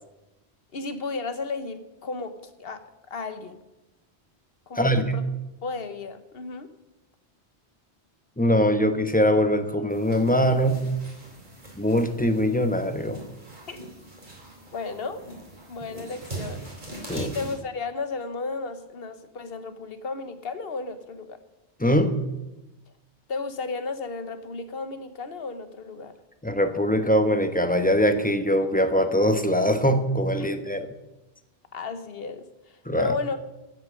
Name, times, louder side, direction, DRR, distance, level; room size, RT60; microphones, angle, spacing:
voice 1, 0.7-3.6 4.7-5.2 5.6-6.7 13.7-13.8 14.7-15.2 15.7-16.7 17.1-21.4 23.3-26.2 30.4-30.5 31.7-33.4, left 4 dB, 60° left, 10 dB, 1.3 m, -33 dB
voice 2, 4.8-5.1 8.4-10.8 11.8-13.2 17.1-17.3 21.8-22.1 26.4-30.9 32.9-33.1, equal, 10° left, 7 dB, 1.0 m, -22 dB
sound 1, 9.9-17.6, right 2 dB, 45° right, 3.8 m, -41 dB
15.5 x 8.7 x 6.5 m, 0.99 s
omnidirectional pair, 1.1 m